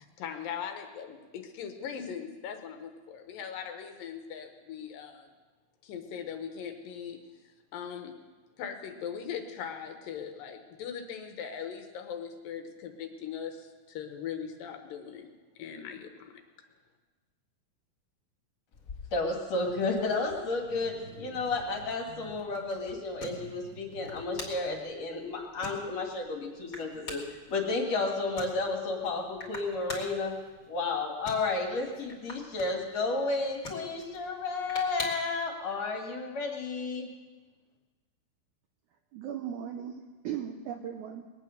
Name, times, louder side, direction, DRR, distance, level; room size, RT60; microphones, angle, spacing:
voice 1, 0.0-5.3 5.8-8.1 8.6-15.3 15.6-16.3, left 7 dB, 75° left, 6 dB, 2.6 m, -40 dB
sound 1, 18.7-35.4, left 2 dB, 25° left, 2.7 m, -47 dB
voice 2, 19.1-30.3 30.7-37.1, left 3 dB, 50° left, 1 dB, 2.7 m, -32 dB
sound 2, 19.6-24.8, right 4 dB, 60° right, 2.7 m, -51 dB
voice 3, 39.1-41.2, right 9 dB, 80° right, 4 dB, 1.7 m, -37 dB
21.0 x 9.0 x 6.5 m, 1.3 s
omnidirectional pair, 4.3 m